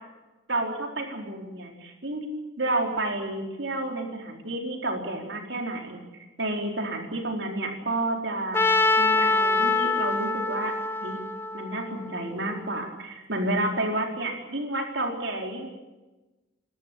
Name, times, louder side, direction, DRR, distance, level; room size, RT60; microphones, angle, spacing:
voice 1, 0.5-8.6 9.0-10.7 11.0-11.2 11.5-15.7, right 2 dB, 70° right, 2 dB, 4.4 m, -30 dB
Trumpet, 8.5-12.6, left 3 dB, 10° left, 1.0 m, -25 dB
28.5 x 13.5 x 10.0 m, 1.1 s
head